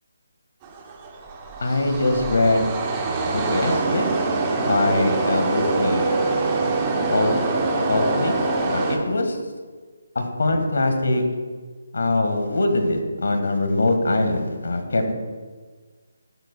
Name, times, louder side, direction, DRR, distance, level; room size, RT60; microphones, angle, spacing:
sound 1, 0.6-9.0, right 3 dB, 15° right, 0.7 m, -24 dB
voice 1, 1.6-2.9 3.3-4.2 4.6-6.1 7.1-7.4 7.9-8.4 8.7-9.4 10.1-11.4 11.9-15.1, left 2 dB, 70° left, 5 dB, 1.5 m, -22 dB
12.5 x 9.7 x 2.2 m, 1.4 s
hypercardioid pair, 175°, 0 cm